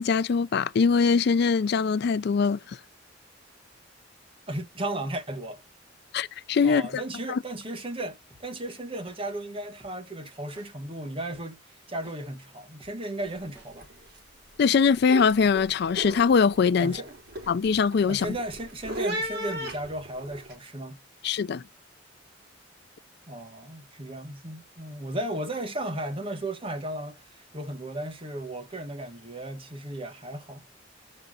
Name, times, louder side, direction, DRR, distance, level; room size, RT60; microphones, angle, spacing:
voice 1, 0.0-2.8 6.1-7.0 7.3-7.4 14.6-17.0 17.5-18.4 21.2-21.6, left 5 dB, 60° left, 0.4 m, -22 dB
voice 2, 4.5-5.6 6.6-13.9 16.8-17.2 18.1-21.0 23.3-30.6, right 1 dB, 30° right, 1.4 m, -35 dB
sound 1, 8.3-8.4 9.1-9.2 9.8-9.9 10.6-10.7 11.3-11.4 12.1-12.2 12.8-12.9 13.6-13.7, right 2 dB, 10° right, 3.3 m, -53 dB
sound 2, 13.2-13.5 13.7-14.2 14.6-20.5, right 1 dB, 55° right, 4.0 m, -37 dB
7.9 x 5.5 x 3.7 m
head